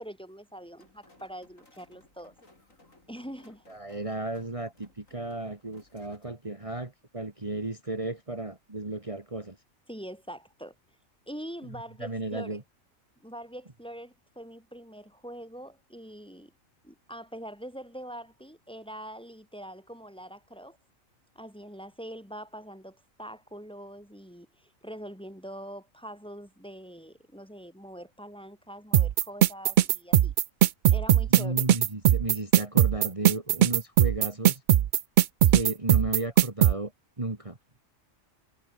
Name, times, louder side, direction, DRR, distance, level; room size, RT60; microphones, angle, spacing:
voice 1, 0.0-2.4 3.1-3.6 9.9-10.7 11.3-12.6 13.2-16.5 16.8-20.8 21.3-30.3 30.9-31.7, equal, 5° left, 3.3 m, -43 dB
sound 1, 0.8-6.4, left 2 dB, 75° left, 6.3 m, -60 dB
voice 2, 3.7-9.6 12.0-12.6 31.3-34.6 35.5-36.9 37.2-37.6, right 2 dB, 25° right, 2.2 m, -34 dB
sound 2, 28.9-36.7, right 11 dB, 70° right, 0.4 m, -19 dB
omnidirectional pair, 1.4 m